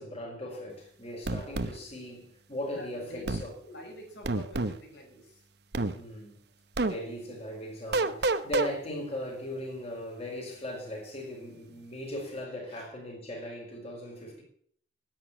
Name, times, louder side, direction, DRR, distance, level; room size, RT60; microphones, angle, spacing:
voice 1, 0.0-3.5 5.9-6.4 6.8-14.4, left 1 dB, 35° left, 4.7 m, -38 dB
sound 1, 1.3-1.7 3.3-3.5 4.2-4.8 5.7-5.9 6.8-6.9 7.9-8.7, right 2 dB, 65° right, 0.9 m, -28 dB
voice 2, 2.7-5.5 12.7-12.9, equal, 75° left, 5.2 m, -46 dB
11.0 x 9.4 x 9.0 m
head